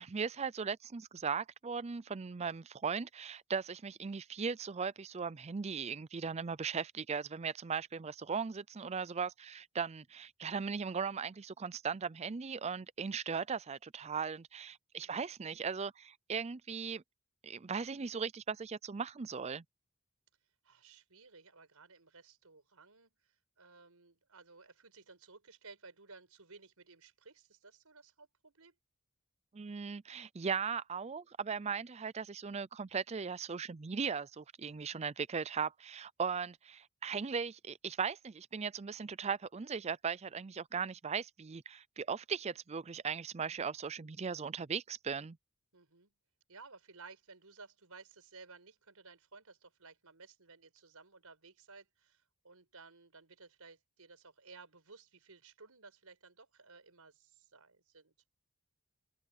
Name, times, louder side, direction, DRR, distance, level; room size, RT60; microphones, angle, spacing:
voice 1, 0.0-17.0 17.4-19.6 29.5-45.4, right 6 dB, 30° right, 0.4 m, -38 dB
voice 2, 14.9-15.3 20.6-28.7 45.7-46.1 46.5-58.1, right 4 dB, 85° right, 4.9 m, -57 dB
open air
head